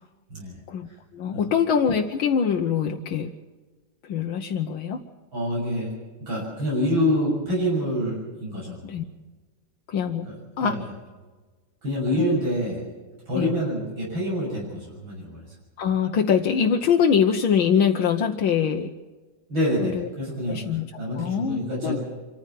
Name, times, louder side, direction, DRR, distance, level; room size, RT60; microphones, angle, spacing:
voice 1, 0.7-3.3 4.0-5.0 8.8-9.0 9.9-10.3 10.6-10.8 12.2-12.4 13.3-13.5 15.8-18.9 19.8-20.1 20.5-20.9 21.2-22.0, left 7 dB, 85° left, 2 dB, 1.8 m, -23 dB
voice 2, 5.3-5.9 6.2-8.8 10.3-10.4 10.6-10.8 11.8-12.8 13.3-15.5 19.5-20.6 21.0-22.0, equal, 80° right, -4 dB, 7.5 m, -26 dB
26.0 x 14.5 x 7.4 m, 1.3 s
omnidirectional pair, 2.1 m